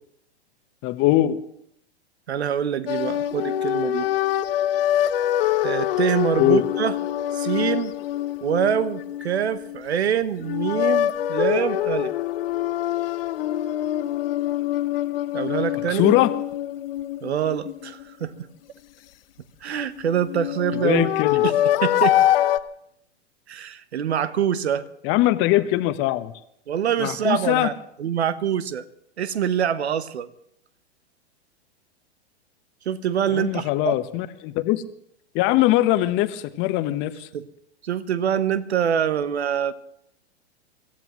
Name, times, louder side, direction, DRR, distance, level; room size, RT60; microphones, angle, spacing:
voice 1, 0.8-1.4 6.4-6.6 15.9-16.3 20.8-21.4 25.0-26.3 27.0-27.7 33.3-34.8 35.3-37.3, left 15 dB, 35° left, 12 dB, 1.1 m, -21 dB
voice 2, 2.3-4.1 5.6-7.0 7.3-7.9 8.4-12.1 15.3-16.1 17.2-18.3 19.6-21.1 21.4-22.2 23.5-24.9 26.7-28.8 29.2-30.3 32.8-33.9 37.3-37.5 37.8-39.7, right 8 dB, 75° right, 15 dB, 1.1 m, -25 dB
sound 1, 2.9-9.9 10.4-18.3 20.0-22.6, left 12 dB, 60° left, 0.8 m, -24 dB
24.5 x 15.0 x 3.1 m, 0.72 s
hypercardioid pair, 110°, 33 cm